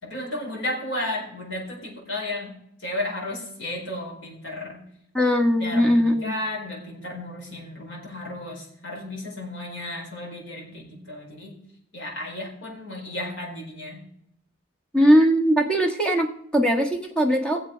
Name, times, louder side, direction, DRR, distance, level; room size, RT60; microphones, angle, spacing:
voice 1, 0.0-2.5 2.8-4.8 5.6-11.5 11.9-14.0, left 1 dB, 65° left, -2 dB, 4.3 m, -33 dB
voice 2, 5.1-6.3 14.9-17.6, equal, 5° left, 2 dB, 1.4 m, -20 dB
15.5 x 7.6 x 5.1 m, 0.73 s
head